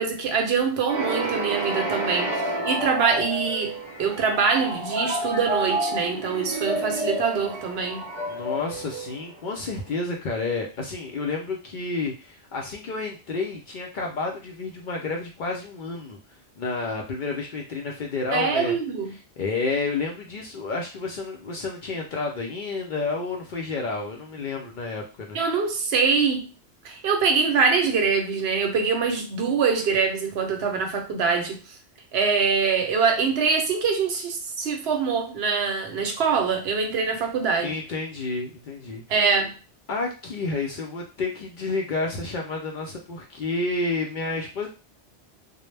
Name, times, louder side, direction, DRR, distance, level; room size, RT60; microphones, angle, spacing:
voice 1, 0.0-8.0 18.3-19.1 25.3-26.5 26.8-31.6 32.1-37.7 39.1-39.5, right 5 dB, 70° right, 0.8 m, -24 dB
sound 1, 0.9-9.6, right 2 dB, 40° right, 0.4 m, -29 dB
voice 2, 8.3-16.2 16.6-18.8 19.4-25.4 37.6-39.3 39.9-44.7, left 3 dB, 60° left, 0.6 m, -30 dB
2.1 x 2.0 x 3.2 m
omnidirectional pair, 1.1 m